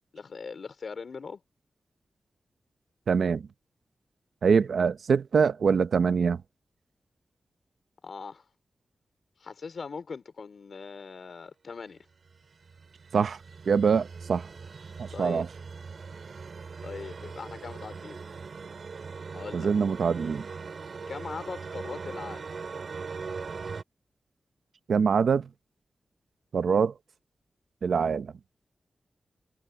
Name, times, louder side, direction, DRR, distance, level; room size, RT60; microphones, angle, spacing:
voice 1, 0.1-1.4 8.0-8.5 9.4-12.0 15.1-15.5 16.8-18.2 19.3-19.7 21.1-22.5, left 5 dB, 55° left, 3.8 m, -40 dB
voice 2, 3.1-3.5 4.4-6.4 13.1-13.4 13.7-14.5 15.0-15.5 19.5-20.5 24.9-25.5 26.5-26.9 27.8-28.3, right 6 dB, 70° right, 1.0 m, -24 dB
sound 1, 12.3-23.8, right 5 dB, 50° right, 4.0 m, -40 dB
wide cardioid pair, 170°, 0 cm